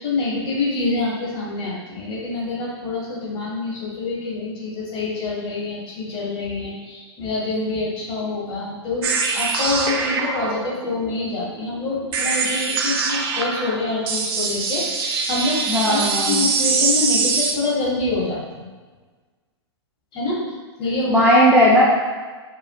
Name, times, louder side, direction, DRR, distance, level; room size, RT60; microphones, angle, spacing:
voice 1, 0.0-18.7 20.1-20.4 20.8-21.2, left 3 dB, 35° left, -5 dB, 1.4 m, -26 dB
sound 1, 9.0-17.5, right 4 dB, 55° right, 0.5 m, -23 dB
voice 2, 15.7-16.4 21.1-21.8, equal, 5° right, -8 dB, 0.6 m, -16 dB
4.8 x 2.9 x 2.3 m, 1.4 s
figure-of-eight pair, 105°, 15 cm